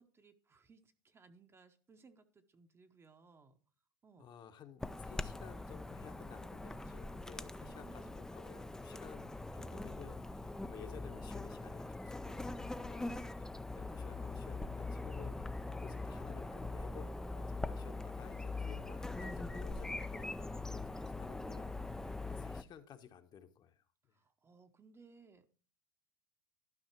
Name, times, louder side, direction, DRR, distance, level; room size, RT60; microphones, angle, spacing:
voice 1, 0.0-3.6 4.0-4.3 7.5-8.1 24.1-25.5, right 4 dB, 20° right, 8 dB, 0.8 m, -63 dB
voice 2, 4.2-12.5 12.7-24.2, left 8 dB, 35° left, 8 dB, 1.0 m, -55 dB
Chirp tweet / Buzz, 4.8-22.6, left 2 dB, 5° left, 0.4 m, -42 dB
12.5 x 5.6 x 4.5 m, 0.40 s
supercardioid pair, 115°, 13 cm